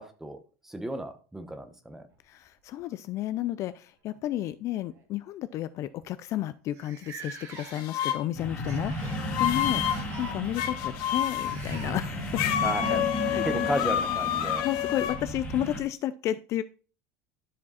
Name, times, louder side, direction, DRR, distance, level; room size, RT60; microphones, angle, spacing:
voice 1, 0.0-2.1 12.6-14.6, right 1 dB, 5° right, 8 dB, 1.0 m, -34 dB
sound 1, 2.1-3.3 4.3-4.5 4.9-5.0 5.8-5.9 6.0-6.1 6.7-8.1 8.6-9.3 9.8-10.4 11.4-12.0 14.1-14.2 15.2-15.3, right 4 dB, 40° right, 1.9 m, -44 dB
voice 2, 2.3-9.8 10.2-12.4 13.3-13.6 14.6-16.6, left 13 dB, 40° left, 14 dB, 0.4 m, -32 dB
sound 2, 7.6-8.2 9.1-10.0 10.5-11.6 12.3-15.2, left 11 dB, 55° left, 1.0 m, -28 dB
sound 3, 8.4-15.8, equal, 15° left, 1.8 m, -34 dB
12.0 x 5.1 x 4.1 m, 0.37 s
supercardioid pair, 150°, 8 cm